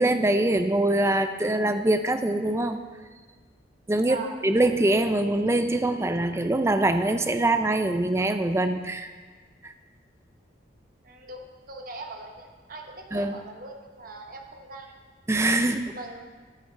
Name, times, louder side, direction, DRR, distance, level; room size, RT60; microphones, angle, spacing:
voice 1, 0.0-2.8 3.9-4.2 4.4-9.1 9.6-9.7 13.1-13.4 15.3-15.9, right 1 dB, 15° right, 8 dB, 0.4 m, -23 dB
voice 2, 4.0-4.4 11.0-14.9 15.9-16.3, right 2 dB, 50° right, 3 dB, 1.1 m, -41 dB
14.0 x 8.3 x 3.4 m, 1.4 s
head